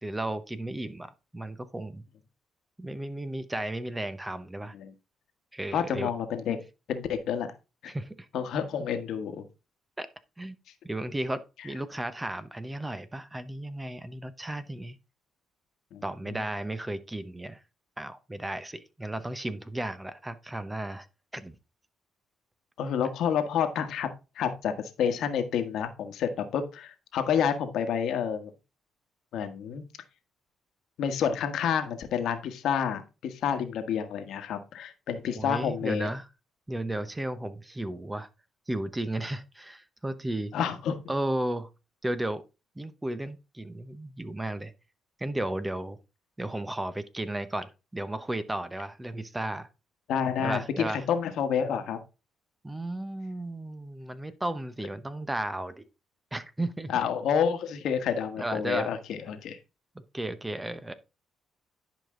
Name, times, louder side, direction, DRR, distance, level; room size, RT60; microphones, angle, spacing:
voice 1, 0.0-2.0 2.8-4.7 5.5-6.1 7.9-8.2 10.0-10.1 10.4-10.6 10.8-15.0 16.0-17.6 18.0-21.1 21.3-21.6 35.2-36.3 36.7-38.3 38.7-40.5 41.1-41.7 42.0-42.4 42.8-44.7 45.2-46.0 46.4-49.7 50.4-51.0 52.6-55.9 56.3-56.9 58.4-59.0 59.9-60.9, right 1 dB, 15° right, 13 dB, 0.8 m, -34 dB
voice 2, 5.7-6.6 6.9-7.5 7.8-7.9 8.3-9.4 15.9-16.0 16.3-16.4 22.8-24.1 24.4-28.5 29.3-29.8 31.0-36.1 40.5-41.0 50.1-52.0 56.9-59.6, left 8 dB, 75° left, 8 dB, 1.4 m, -29 dB
10.5 x 5.2 x 3.7 m, 0.28 s
cardioid pair, 90°, 0 cm